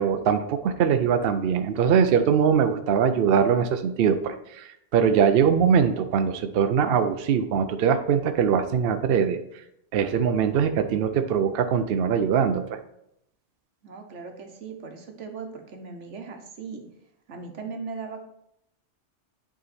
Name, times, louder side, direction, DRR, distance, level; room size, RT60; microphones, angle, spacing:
voice 1, 0.0-9.4 9.9-12.8, right 7 dB, 60° right, 8 dB, 0.7 m, -22 dB
voice 2, 13.8-16.8 17.3-18.3, right 5 dB, 85° right, 5 dB, 1.3 m, -38 dB
9.5 x 3.8 x 4.2 m, 0.78 s
omnidirectional pair, 1.2 m